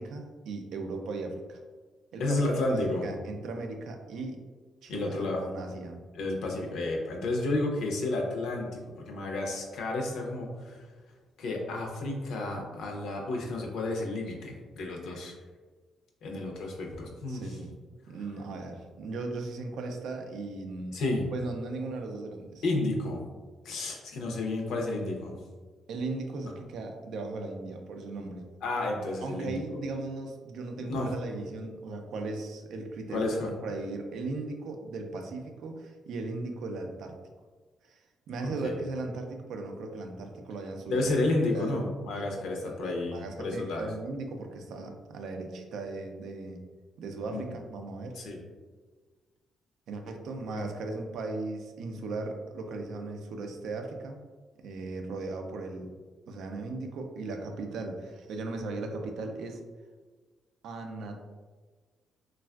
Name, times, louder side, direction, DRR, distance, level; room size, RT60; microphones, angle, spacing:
voice 1, 0.0-1.6 2.1-4.4 4.8-6.0 17.3-17.7 18.1-21.0 21.3-22.6 25.9-28.5 29.2-37.1 37.8-41.1 41.5-41.8 42.7-46.6 47.0-48.2 49.9-54.2 54.6-56.0 56.3-59.6 60.6-61.2, right 3 dB, 75° right, 4 dB, 0.4 m, -37 dB
voice 2, 2.2-3.0 4.9-5.4 6.1-10.9 11.4-15.3 16.2-17.4 20.9-21.3 22.6-23.2 23.6-25.4 26.4-26.5 28.6-29.6 30.8-31.1 33.1-33.5 38.4-38.8 40.9-43.9 47.3-47.4 48.2-48.4 50.5-50.6, left 2 dB, 80° left, 0 dB, 0.6 m, -31 dB
3.4 x 2.3 x 2.2 m, 1.4 s
cardioid pair, 90°, 0 cm